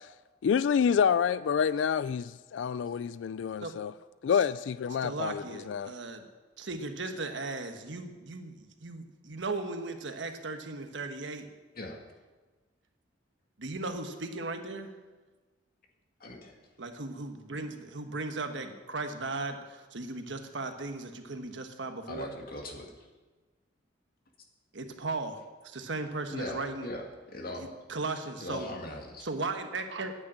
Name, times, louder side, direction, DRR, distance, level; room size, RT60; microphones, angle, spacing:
voice 1, 0.4-3.9 4.2-5.9, left 7 dB, 75° left, 17 dB, 0.3 m, -28 dB
voice 2, 5.0-6.2 6.6-11.5 13.6-14.9 16.8-22.3 24.7-26.9 27.5-28.7 29.2-30.1, right 3 dB, 70° right, 6 dB, 1.3 m, -37 dB
voice 3, 16.2-16.6 22.1-22.9 26.3-27.0 27.3-27.7 28.4-29.3, left 1 dB, 50° left, 2 dB, 2.1 m, -39 dB
9.5 x 8.9 x 8.8 m, 1.3 s
head